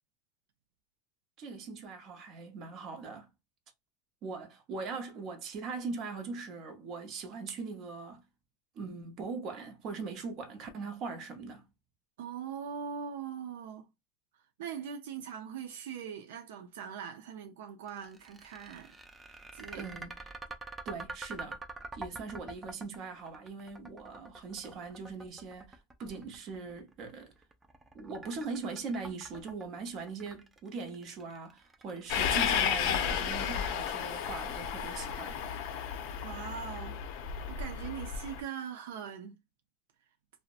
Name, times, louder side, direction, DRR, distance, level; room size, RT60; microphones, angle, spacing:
voice 1, 1.4-3.3 4.2-8.2 8.8-11.7 19.7-20.2 20.8-21.6 21.9-27.3 27.9-35.4, right 4 dB, 40° right, 0.7 m, -41 dB
voice 2, 12.2-13.9 14.6-19.0 19.3-19.9 36.2-37.0 37.5-39.4, right 7 dB, 85° right, 0.4 m, -41 dB
sound 1, 17.9-34.0, right 3 dB, 10° right, 0.4 m, -46 dB
Train, 32.1-38.4, left 8 dB, 60° left, 0.4 m, -33 dB
2.6 x 2.1 x 2.4 m
supercardioid pair, 140°, 0 cm